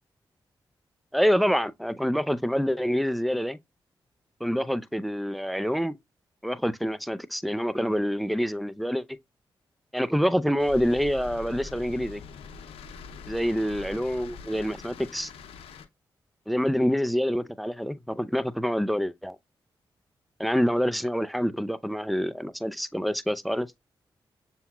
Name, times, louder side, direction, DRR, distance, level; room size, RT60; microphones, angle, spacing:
voice 1, 1.1-3.6 4.4-6.0 6.4-9.0 9.9-12.2 13.3-15.3 16.5-19.4 20.4-23.7, equal, ahead, 0.5 m, -26 dB
sound 1, 10.6-15.9, left 4 dB, 90° left, 0.6 m, -43 dB
6.9 x 3.0 x 2.2 m
supercardioid pair, 45°, 9 cm